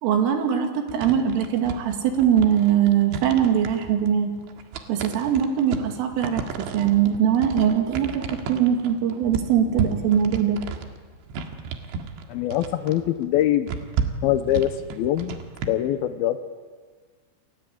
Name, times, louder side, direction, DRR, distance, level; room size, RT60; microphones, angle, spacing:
voice 1, 0.0-4.3 4.9-10.6, right 9 dB, 90° right, 4 dB, 5.0 m, -22 dB
sound 1, 0.9-15.7, right 6 dB, 70° right, 4.0 m, -33 dB
voice 2, 12.3-13.8 14.2-15.4 15.7-16.4, left 12 dB, 80° left, 9 dB, 2.2 m, -23 dB
29.0 x 22.5 x 8.7 m, 1.5 s
omnidirectional pair, 5.6 m